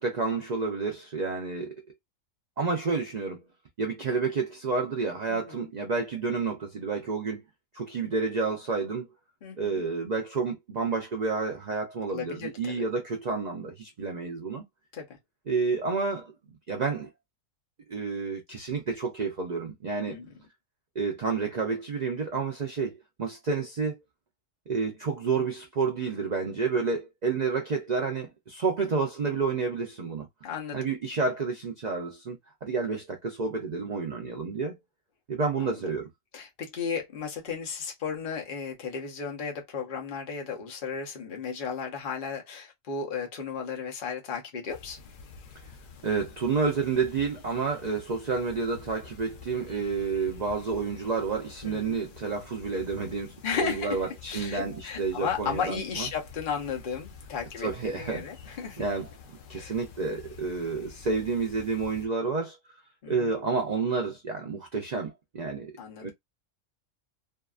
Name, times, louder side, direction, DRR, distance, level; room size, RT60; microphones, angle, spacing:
voice 1, 0.0-1.7 2.6-3.4 3.8-7.4 7.7-9.1 9.6-14.6 15.5-16.3 16.7-17.1 17.9-20.2 21.0-24.0 24.7-30.3 30.7-34.8 35.3-36.1 46.0-56.1 57.6-58.2 58.8-62.6 63.1-66.1, right 4 dB, 80° right, 0.4 m, -30 dB
voice 2, 5.3-5.7 9.4-9.8 12.1-12.8 14.9-15.2 20.1-20.3 28.8-28.9 30.4-30.9 35.6-35.7 36.3-45.0 51.6-51.9 53.4-58.8 59.5-59.7 63.0-63.3 65.8-66.1, left 6 dB, 45° left, 0.8 m, -34 dB
sound 1, 44.7-62.1, left 5 dB, 75° left, 0.4 m, -49 dB
2.7 x 2.3 x 2.3 m
omnidirectional pair, 1.5 m